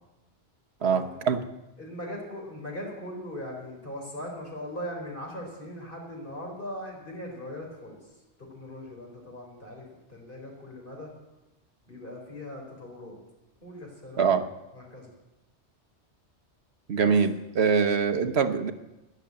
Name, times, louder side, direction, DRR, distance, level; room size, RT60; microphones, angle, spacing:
voice 1, 0.8-1.4 14.2-14.4 16.9-18.7, right 6 dB, 65° right, 9 dB, 1.3 m, -24 dB
voice 2, 1.8-8.0 8.4-11.1 11.9-13.2 13.6-14.3 14.7-15.1 17.0-17.1, left 1 dB, 50° left, -1 dB, 4.4 m, -39 dB
13.0 x 10.5 x 8.7 m, 0.99 s
omnidirectional pair, 1.2 m